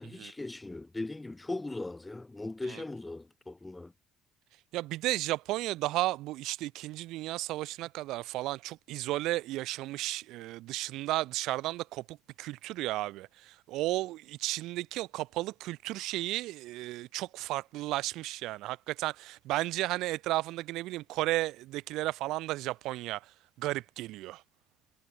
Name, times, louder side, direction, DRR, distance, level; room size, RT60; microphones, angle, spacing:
voice 1, 0.0-3.9, left 2 dB, 15° left, 7.7 m, -39 dB
voice 2, 4.7-23.3 23.6-24.4, right 17 dB, 75° right, 3.5 m, -33 dB
supercardioid pair, 80°, 0 cm